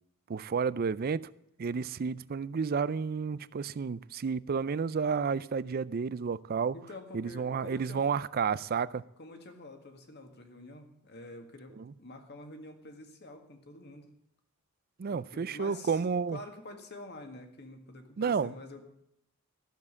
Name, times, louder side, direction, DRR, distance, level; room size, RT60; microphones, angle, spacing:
voice 1, 0.3-1.3 1.6-6.7 7.1-9.0 11.8-11.9 15.0-16.4 18.2-18.5, right 5 dB, 45° right, 0.4 m, -31 dB
voice 2, 6.7-8.1 9.2-14.1 15.1-16.0 16.3-18.8, left 2 dB, 50° left, 1.8 m, -48 dB
13.5 x 7.3 x 8.3 m
head